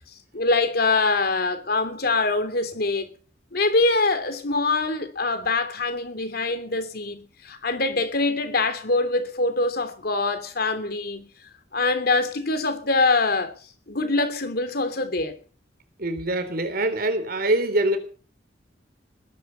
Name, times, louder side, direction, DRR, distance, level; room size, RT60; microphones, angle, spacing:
voice 1, 0.3-3.1 3.5-11.3 11.7-13.5 13.9-15.3, left 3 dB, 60° left, 3.1 m, -24 dB
voice 2, 16.0-18.0, right 1 dB, 55° right, 3.7 m, -24 dB
21.0 x 11.5 x 5.8 m
head